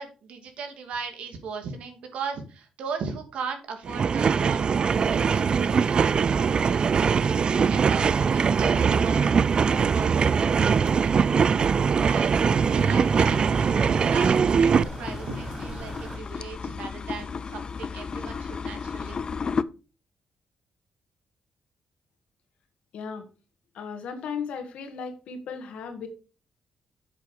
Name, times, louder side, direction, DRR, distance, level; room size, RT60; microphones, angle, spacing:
voice 1, 0.0-9.3 9.6-10.3 10.6-11.7 12.0-19.2, right 5 dB, 80° right, 5 dB, 2.4 m, -37 dB
sound 1, 3.9-14.8, right 6 dB, 50° right, 0.3 m, -22 dB
sound 2, 4.9-16.2, right 3 dB, 30° right, 0.9 m, -37 dB
sound 3, 12.3-19.6, left 5 dB, 45° left, 0.5 m, -34 dB
voice 2, 22.9-23.3 23.7-26.1, left 6 dB, 80° left, 7 dB, 2.0 m, -36 dB
8.5 x 6.9 x 4.9 m, 0.34 s
cardioid pair, 75°, 2 cm